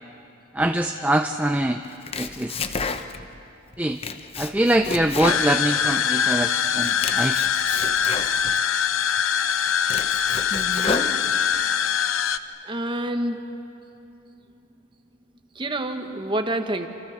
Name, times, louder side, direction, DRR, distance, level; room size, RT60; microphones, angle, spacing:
voice 1, 0.5-1.8 2.2-2.6 3.8-4.0 4.4-7.5, right 1 dB, 5° right, 6 dB, 0.5 m, -23 dB
Domestic sounds home sounds, 1.8-3.4 3.7-6.3 6.6-8.6 9.2-9.3 9.7-11.6, left 4 dB, 25° left, 0.8 m, -32 dB
sound 1, 5.2-12.4, left 8 dB, 70° left, 0.7 m, -23 dB
voice 2, 10.5-11.2 12.6-13.4 15.5-16.9, right 1 dB, 20° right, 6 dB, 1.3 m, -28 dB
28.0 x 28.0 x 6.5 m, 2.8 s
head